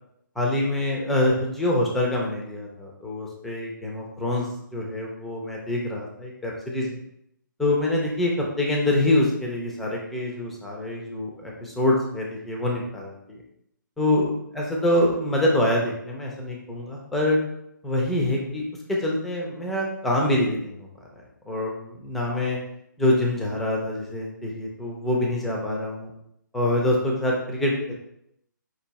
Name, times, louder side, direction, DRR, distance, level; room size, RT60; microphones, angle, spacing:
voice 1, 0.4-4.5 4.7-7.0 7.6-8.3 8.6-13.4 14.0-17.4 17.8-18.6 18.9-20.9 21.5-22.6 23.0-26.1 26.5-27.9, left 1 dB, ahead, -2 dB, 0.4 m, -25 dB
4.6 x 2.6 x 3.9 m, 0.77 s
hypercardioid pair, 160°, 11 cm